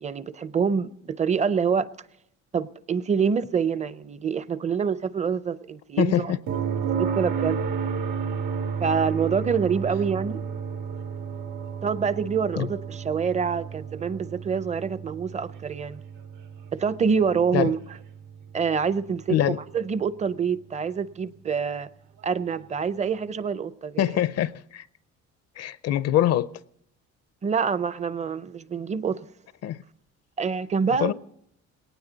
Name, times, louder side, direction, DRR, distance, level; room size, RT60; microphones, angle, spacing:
voice 1, 0.0-1.9 2.5-6.3 6.9-7.6 8.8-10.4 11.8-16.0 16.7-17.8 18.5-19.4 19.7-21.9 22.2-24.0 27.4-29.2 30.4-31.1, right 6 dB, 25° right, 0.5 m, -26 dB
voice 2, 6.0-6.4 12.6-12.7 17.5-17.7 19.3-19.6 24.0-24.9 25.6-26.5 29.6-29.8 31.0-31.1, left 12 dB, 60° left, 0.5 m, -23 dB
sound 1, 6.5-20.3 22.6-22.7, right 6 dB, 90° right, 2.1 m, -32 dB
20.0 x 18.5 x 4.0 m
cardioid pair, 150°, 29 cm